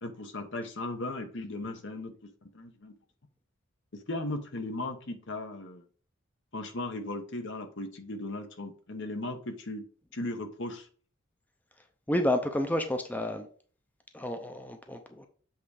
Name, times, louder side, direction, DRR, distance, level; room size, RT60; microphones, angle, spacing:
voice 1, 0.0-3.0 3.9-5.9 6.5-9.8 10.1-10.9, left 2 dB, 60° left, 1.1 m, -37 dB
voice 2, 12.1-13.5 14.1-15.3, left 1 dB, 10° left, 0.6 m, -30 dB
7.8 x 3.6 x 4.9 m
head